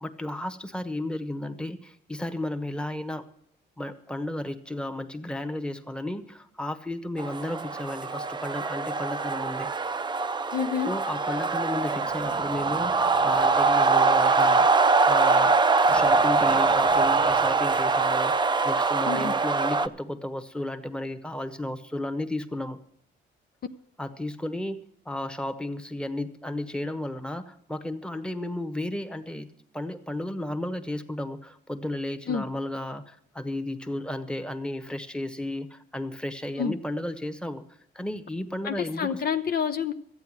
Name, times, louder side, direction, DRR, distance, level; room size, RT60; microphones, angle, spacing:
voice 1, 0.0-3.3 3.8-9.7 10.9-14.7 15.1-15.6 15.9-22.8 24.0-29.5 29.7-37.6 37.9-39.2, left 1 dB, 5° left, 9 dB, 1.1 m, -33 dB
sound 1, 7.2-19.9, right 4 dB, 25° right, 0.6 m, -23 dB
voice 2, 10.5-10.9 19.1-19.3 32.3-32.4 36.6-36.8 38.6-39.9, left 7 dB, 50° left, 8 dB, 0.7 m, -28 dB
sound 2, 11.8-14.9 15.8-18.5, left 3 dB, 75° left, 1.7 m, -49 dB
13.0 x 8.8 x 7.4 m, 0.69 s
cardioid pair, 90°, 20 cm